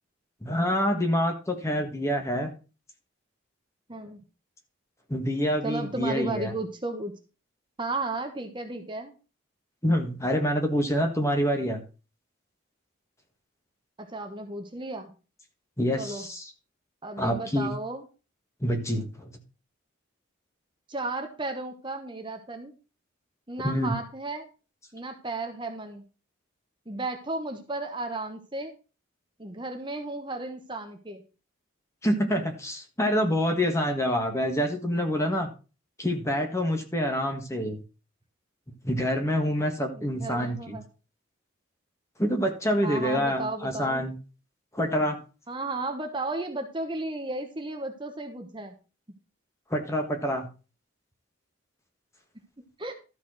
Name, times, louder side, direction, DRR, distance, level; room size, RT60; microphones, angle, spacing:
voice 1, 0.4-2.5 5.1-6.5 9.8-11.8 15.8-16.5 17.2-17.7 18.6-19.3 23.6-23.9 32.0-35.5 36.0-37.8 38.8-40.8 42.2-44.1 44.7-45.2 49.7-50.5, equal, 15° left, 4 dB, 1.6 m, -26 dB
voice 2, 3.9-4.2 5.6-7.1 7.8-9.1 14.0-15.1 16.0-16.3 17.0-18.0 20.9-22.7 23.5-24.5 24.9-26.0 26.9-28.7 29.4-31.2 39.9-40.8 42.8-44.0 45.5-48.7 52.8-52.9, right 2 dB, 25° right, 5 dB, 1.1 m, -34 dB
13.0 x 4.6 x 6.2 m, 0.33 s
head